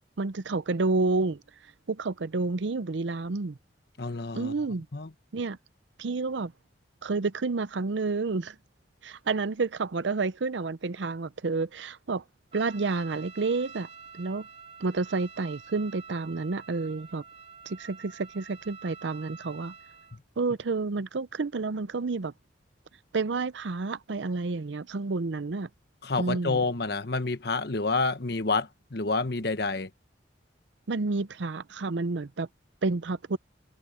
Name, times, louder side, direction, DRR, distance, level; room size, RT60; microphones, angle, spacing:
voice 1, 0.2-1.4 1.9-3.6 4.3-4.9 5.3-5.6 6.0-6.5 7.0-8.6 9.0-12.2 12.5-13.9 14.1-14.5 14.8-17.2 17.7-19.7 20.4-22.3 23.1-25.7 26.2-26.6 30.9-32.5 32.8-33.4, right 3 dB, 75° right, 0.6 m, -30 dB
voice 2, 4.0-4.5 4.9-5.1 26.0-29.9, left 3 dB, 60° left, 1.1 m, -28 dB
Trumpet, 12.5-20.2, right 6 dB, 35° right, 3.4 m, -48 dB
head